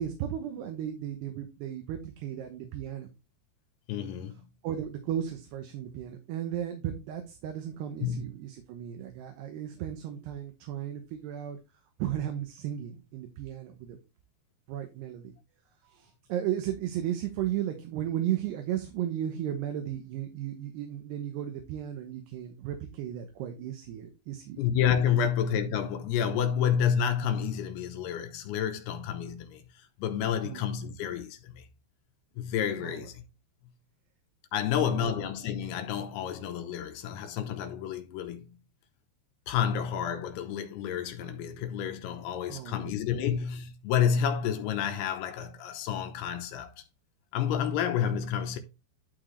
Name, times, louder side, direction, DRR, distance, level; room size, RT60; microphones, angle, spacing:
voice 1, 0.0-3.1 4.6-11.6 12.0-14.0 14.7-15.3 15.8-24.6 30.4-30.6 32.8-33.1 34.9-35.1 42.5-42.9, right 11 dB, 75° right, 3.0 m, -35 dB
voice 2, 3.9-4.4 8.0-8.2 24.6-29.6 30.0-31.6 32.4-33.2 34.5-38.6 39.5-46.7 47.3-48.6, left 8 dB, 75° left, 2.8 m, -29 dB
12.0 x 4.5 x 3.2 m
omnidirectional pair, 4.9 m